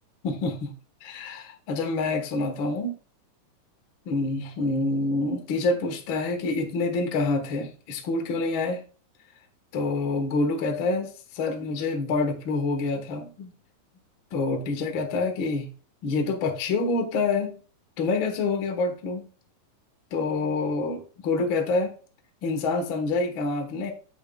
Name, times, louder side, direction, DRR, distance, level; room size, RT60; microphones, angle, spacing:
voice 1, 0.2-0.7 1.0-2.9 4.1-8.8 9.7-13.5 14.3-15.7 16.0-17.6 18.0-19.3 20.1-21.9 22.4-23.9, left 3 dB, 50° left, 4 dB, 1.7 m, -27 dB
8.7 x 8.5 x 2.4 m, 0.37 s
omnidirectional pair, 3.7 m